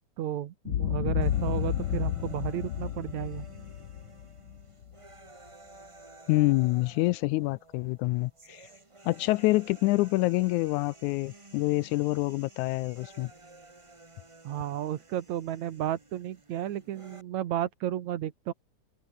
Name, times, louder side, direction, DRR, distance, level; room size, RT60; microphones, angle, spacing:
voice 1, 0.2-3.5 14.4-18.5, right 11 dB, 70° right, 2.5 m, -33 dB
Boom, 0.7-4.9, left 11 dB, 65° left, 1.2 m, -31 dB
sound 1, 1.2-17.2, right 2 dB, 20° right, 0.8 m, -53 dB
voice 2, 6.3-8.7 9.1-13.3, left 20 dB, 80° left, 1.8 m, -26 dB
omnidirectional pair, 3.6 m